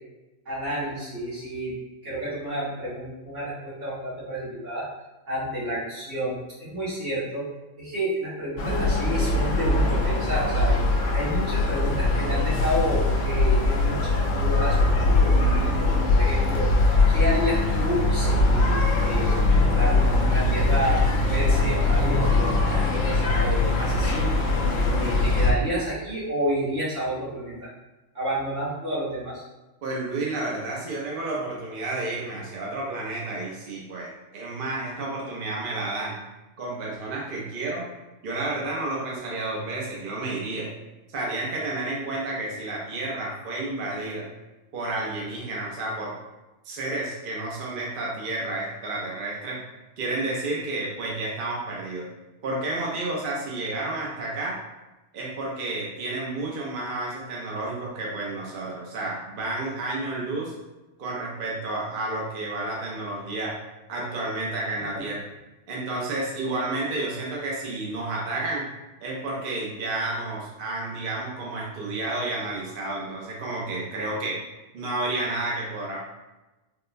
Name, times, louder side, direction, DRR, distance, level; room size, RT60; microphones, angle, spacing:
voice 1, 0.5-1.7 2.0-4.9 5.3-7.5 7.8-10.8 11.1-16.7 17.1-24.4 25.0-27.7 28.1-29.4 64.9-65.0, equal, 75° right, -10 dB, 1.9 m, -30 dB
sound 1, 8.6-25.5, left 2 dB, 80° left, 1.0 m, -22 dB
voice 2, 29.8-36.2 36.6-37.9 38.2-40.7 41.1-44.3 44.7-46.1 46.6-49.6 50.0-52.1 52.4-54.6 55.1-60.5 61.0-63.6 63.9-65.2 65.7-68.7 69.0-74.4 74.7-76.0, right 2 dB, 55° right, -4 dB, 0.7 m, -31 dB
3.7 x 2.1 x 2.5 m, 1.1 s
omnidirectional pair, 1.3 m